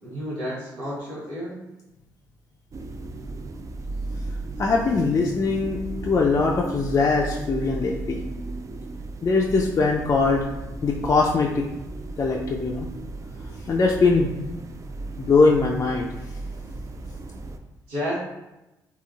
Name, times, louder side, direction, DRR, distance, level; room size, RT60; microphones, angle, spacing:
voice 1, 0.0-1.6 17.9-18.2, equal, 85° right, -11 dB, 1.0 m, -31 dB
sound 1, 2.7-17.6, right 2 dB, 35° right, 0.3 m, -35 dB
voice 2, 4.6-8.2 9.2-10.5 10.8-11.6 12.2-12.9 13.7-14.3 15.2-16.1, left 4 dB, 35° left, -1 dB, 0.4 m, -21 dB
3.6 x 2.2 x 2.3 m, 0.98 s
supercardioid pair, 55°, 9 cm